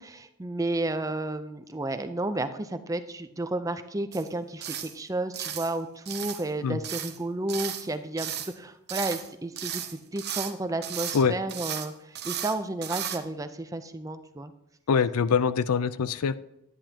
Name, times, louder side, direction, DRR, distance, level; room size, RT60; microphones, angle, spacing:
voice 1, 0.0-14.5, right 2 dB, 15° right, 10 dB, 0.5 m, -32 dB
sound 1, 4.1-4.3 4.6-4.9 5.3-5.7 6.1-6.5 6.8-7.2 7.5-7.9 8.2-8.5 8.9-9.3 9.6-10.5 10.8-11.2 11.5-11.9 12.1-12.5 12.8-13.2, right 10 dB, 50° right, 0.9 m, -35 dB
voice 2, 14.9-16.4, left 6 dB, 90° left, 15 dB, 0.5 m, -24 dB
11.0 x 10.0 x 2.8 m, 0.84 s
head